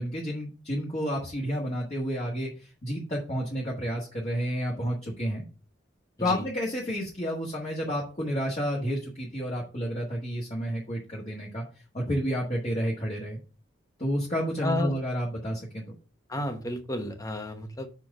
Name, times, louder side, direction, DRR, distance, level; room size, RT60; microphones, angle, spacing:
voice 1, 0.0-2.5 2.8-5.4 6.2-11.6 11.9-13.4 14.0-15.9, equal, 35° left, -4 dB, 1.5 m, -30 dB
voice 2, 14.6-15.0 16.3-17.9, left 1 dB, 20° left, 6 dB, 1.0 m, -32 dB
5.0 x 4.6 x 6.0 m, 0.36 s
head